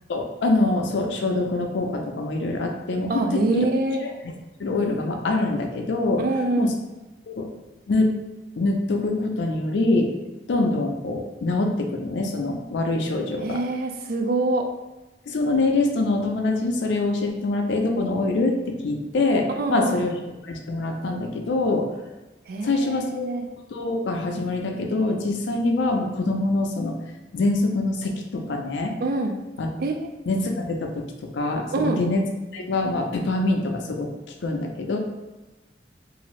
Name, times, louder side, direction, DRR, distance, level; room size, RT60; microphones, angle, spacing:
voice 1, 0.1-3.7 4.0-4.1 4.6-6.2 6.6-6.7 7.3-7.5 7.9-8.1 8.6-10.1 10.5-13.6 15.3-20.1 20.5-21.9 22.6-23.3 23.7-26.9 27.3-29.0 29.6-29.7 30.3-31.0 31.3-32.2 32.5-34.1 34.4-35.0, left 2 dB, 80° left, 3 dB, 0.5 m, -24 dB
voice 2, 3.1-4.0 6.2-6.7 13.4-14.6 19.5-20.1 22.5-23.5 29.0-29.3 29.8-30.1 31.7-32.0, right 2 dB, 55° right, 4 dB, 0.3 m, -25 dB
2.7 x 2.5 x 3.1 m, 1.0 s
head